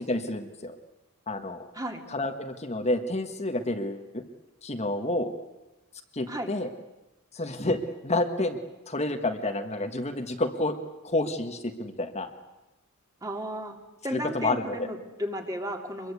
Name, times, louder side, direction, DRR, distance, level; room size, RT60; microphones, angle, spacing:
voice 1, 0.1-0.8 1.3-1.7 2.1-4.2 4.6-5.3 6.1-6.7 7.3-8.6 8.9-10.8 11.0-12.3 14.1-14.8, left 2 dB, 30° left, 5 dB, 1.5 m, -29 dB
voice 2, 13.2-13.8 14.0-16.1, equal, 15° right, 4 dB, 2.5 m, -34 dB
25.0 x 22.5 x 8.4 m, 1.0 s
head